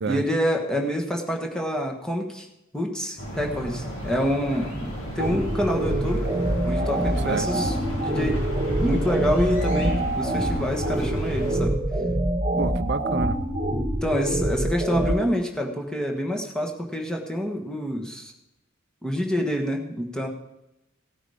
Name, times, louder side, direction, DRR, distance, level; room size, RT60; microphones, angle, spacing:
voice 1, 0.1-2.5 2.7-6.3 6.6-8.4 8.8-11.8 14.0-18.3 19.0-20.3, equal, 5° left, 1 dB, 1.4 m, -27 dB
sound 1, 3.2-11.6, equal, 75° left, 5.2 m, -34 dB
sound 2, 5.2-15.2, right 1 dB, 30° right, 1.5 m, -25 dB
voice 2, 12.6-13.4, right 4 dB, 55° right, 12 dB, 0.5 m, -28 dB
17.5 x 8.8 x 5.0 m, 0.92 s
head